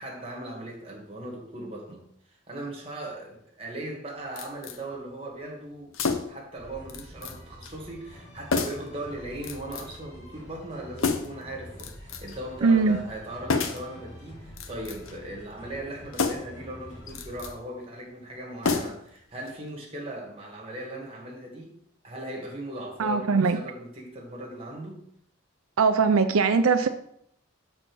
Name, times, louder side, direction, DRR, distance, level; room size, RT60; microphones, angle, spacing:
voice 1, 0.0-21.7 22.0-25.0, right 1 dB, 25° right, -1 dB, 1.7 m, -39 dB
sound 1, 4.4-4.8 5.9-6.5 6.9-7.4 7.6-7.8 8.5-8.9 9.4-10.0 11.0-11.4 11.8-12.4 13.5-13.9 14.5-15.2 16.1-16.6 17.1-17.5 18.6-19.2 19.5-19.6, left 4 dB, 75° left, 0.7 m, -29 dB
sound 2, 6.6-17.5, equal, 35° left, 2.7 m, -47 dB
voice 2, 12.6-13.0 23.0-23.6 25.8-26.9, right 4 dB, 90° right, 9 dB, 0.5 m, -21 dB
6.6 x 4.3 x 6.1 m, 0.70 s
head